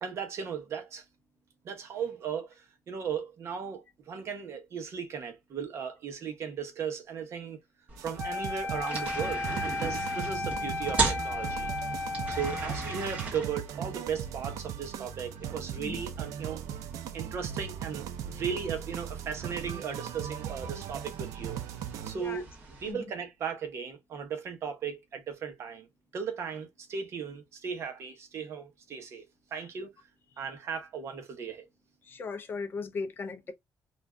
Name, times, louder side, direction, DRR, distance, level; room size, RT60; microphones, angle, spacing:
voice 1, 0.0-1.0 1.6-7.6 8.0-11.7 12.3-16.6 17.1-21.6 22.0-22.5 22.8-25.9 26.1-29.9 30.4-31.7, right 7 dB, 50° right, 0.8 m, -37 dB
sound 1, 7.9-22.9, right 3 dB, 25° right, 1.0 m, -39 dB
sound 2, 8.0-22.2, right 9 dB, 80° right, 0.4 m, -39 dB
Wind instrument woodwind instrument, 8.2-13.3, left 3 dB, 65° left, 0.8 m, -35 dB
voice 2, 32.0-33.5, left 4 dB, 35° left, 0.5 m, -37 dB
2.5 x 2.3 x 3.2 m
cardioid pair, 150°, 6 cm